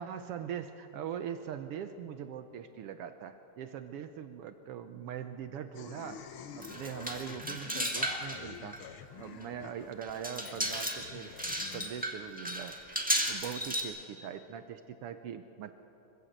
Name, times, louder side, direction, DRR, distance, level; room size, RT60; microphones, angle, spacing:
voice 1, 0.0-6.2 6.5-8.8 9.2-11.3 11.7-12.8 13.3-15.7, right 8 dB, 75° right, 9 dB, 1.4 m, -41 dB
sound 1, 5.7-11.9, left 8 dB, 65° left, 1.4 m, -48 dB
sound 2, 6.6-8.4 8.7-8.8 9.4-9.5 10.0-13.8, right 1 dB, 5° right, 1.1 m, -34 dB
24.5 x 15.5 x 8.0 m, 3.0 s
omnidirectional pair, 3.3 m